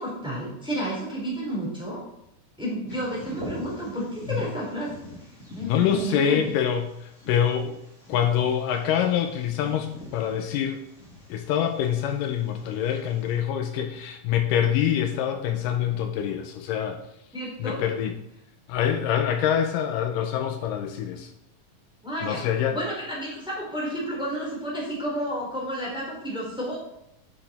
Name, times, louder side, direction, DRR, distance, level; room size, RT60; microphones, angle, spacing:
voice 1, 0.0-2.0 2.6-4.9 5.5-6.5 17.3-17.8 22.0-22.4 22.7-26.8, right 1 dB, ahead, -5 dB, 2.8 m, -31 dB
Bird vocalization bird call bird song, 2.9-13.4, left 1 dB, 20° left, 2.9 m, -44 dB
voice 2, 5.6-7.8 8.1-10.8 11.3-17.0 17.6-18.1 18.7-21.3 22.2-22.8, left 9 dB, 80° left, 6 dB, 2.2 m, -25 dB
8.9 x 6.0 x 4.1 m, 0.79 s
omnidirectional pair, 3.9 m